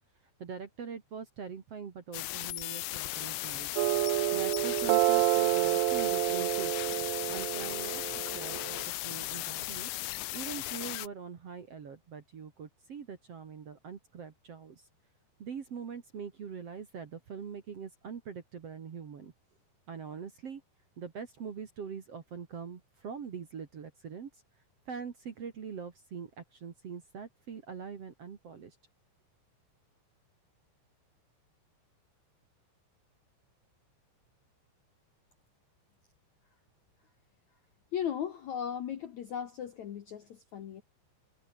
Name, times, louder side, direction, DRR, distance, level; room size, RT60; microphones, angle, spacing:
voice 1, 0.4-3.7 4.0-6.7 7.3-8.0 8.3-9.9 10.3-14.9 15.4-19.3 19.9-20.6 21.0-24.4 24.9-28.8, right 6 dB, 50° right, 2.0 m, -43 dB
sound 1, 2.1-11.1, left 19 dB, 85° left, 3.1 m, -37 dB
sound 2, 3.8-8.8, right 21 dB, 90° right, 2.2 m, -29 dB
voice 2, 37.9-40.8, left 9 dB, 70° left, 1.8 m, -37 dB
omnidirectional pair, 5.3 m